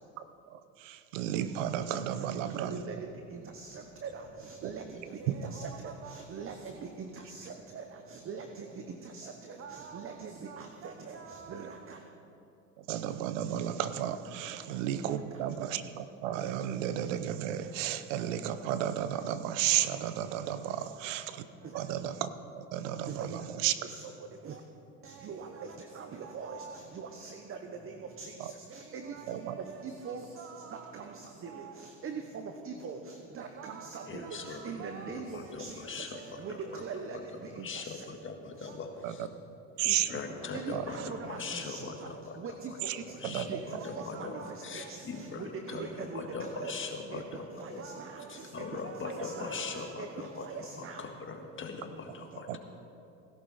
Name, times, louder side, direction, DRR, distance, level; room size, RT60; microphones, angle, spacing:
voice 1, 0.5-2.8 4.6-4.7 5.3-5.4 12.8-21.5 21.7-22.3 22.5-23.7 28.4-28.5 29.3-29.6 39.0-39.1 39.8-40.1 40.7-40.8 42.9-43.0 43.2-43.5 43.7-43.8 52.5-52.6, right 11 dB, 85° right, 12 dB, 0.8 m, -33 dB
voice 2, 2.5-12.1 14.5-14.7 15.1-15.5 20.8-21.0 21.6-21.8 23.1-24.6 25.0-38.0 38.5-38.8 40.5-51.1, right 5 dB, 35° right, 5 dB, 1.0 m, -43 dB
voice 3, 34.1-34.7 35.1-36.2 37.5-39.3 39.8-42.4 43.2-45.9 46.1-47.8 48.3-50.5 50.8-52.6, left 4 dB, 35° left, 3 dB, 1.8 m, -41 dB
17.0 x 11.5 x 4.2 m, 2.8 s
supercardioid pair, 90°, 37 cm